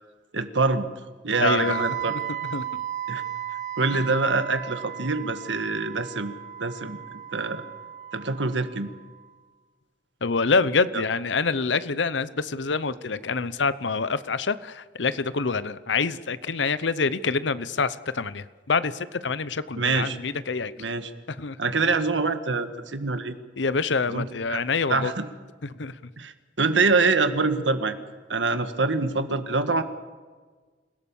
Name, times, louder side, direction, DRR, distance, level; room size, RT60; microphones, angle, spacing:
voice 1, 0.3-0.9 1.2-2.1 3.1-3.2 3.8-7.0 7.3-7.6 8.1-8.9 10.9-11.0 19.8-20.2 20.8-21.1 21.6-23.4 24.1-24.6 24.9-25.2 26.2-28.0 28.3-29.8, right 3 dB, 85° right, 9 dB, 1.7 m, -25 dB
Wind instrument woodwind instrument, 1.3-9.2, right 10 dB, 45° right, 1.8 m, -35 dB
voice 2, 1.4-2.8 3.9-4.0 10.2-20.7 21.3-21.6 23.6-25.1 25.8-26.0, left 4 dB, 75° left, 15 dB, 0.8 m, -26 dB
26.5 x 17.0 x 7.2 m, 1.4 s
head